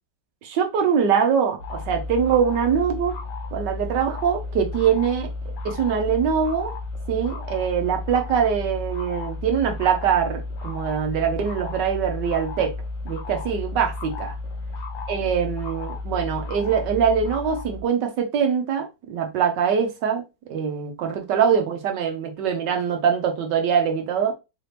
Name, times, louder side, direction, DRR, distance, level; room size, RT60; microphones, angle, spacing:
voice 1, 0.4-3.2 3.5-5.3 5.6-6.7 7.1-12.7 13.0-14.3 15.1-20.2 20.5-24.3, right 7 dB, 70° right, 1.4 m, -23 dB
sound 1, 1.6-17.8, left 3 dB, 80° left, 1.5 m, -33 dB
4.1 x 2.7 x 3.3 m
omnidirectional pair, 2.1 m